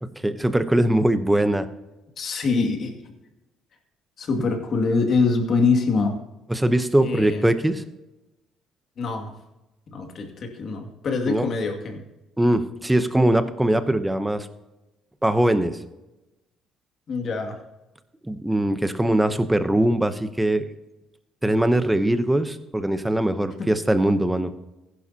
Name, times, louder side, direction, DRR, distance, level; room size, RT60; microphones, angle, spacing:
voice 1, 0.2-1.7 6.5-7.8 11.3-11.5 12.4-14.5 15.2-15.8 18.2-20.7 21.4-24.5, right 1 dB, 5° right, 10 dB, 0.9 m, -21 dB
voice 2, 2.2-2.9 4.2-6.2 7.0-7.5 9.0-9.3 9.9-12.0 17.1-17.6 23.6-23.7, left 4 dB, 50° left, 3 dB, 2.2 m, -24 dB
15.5 x 11.5 x 2.9 m, 1.0 s
cardioid pair, 110°, 0 cm